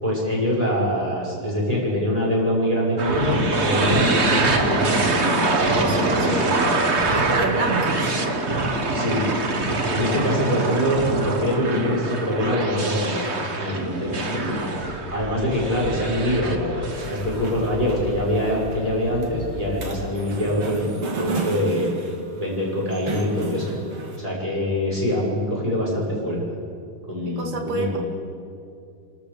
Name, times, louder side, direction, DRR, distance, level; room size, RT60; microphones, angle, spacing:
voice 1, 0.0-7.1 8.9-9.2 9.9-14.7 15.1-20.9 21.2-21.9 22.4-23.7 24.2-26.6 27.1-28.0, equal, 15° right, -5 dB, 6.3 m, -24 dB
sound 1, 3.0-17.9, right 2 dB, 35° right, 1.3 m, -24 dB
voice 2, 5.8-6.6 7.1-8.1 27.2-28.0, right 3 dB, 60° right, 2 dB, 3.0 m, -28 dB
sound 2, 14.8-20.1, left 2 dB, 35° left, 3.3 m, -36 dB
sound 3, 16.9-24.2, right 3 dB, 75° right, 3.0 m, -33 dB
29.5 x 13.0 x 6.9 m, 2.5 s
omnidirectional pair, 2.4 m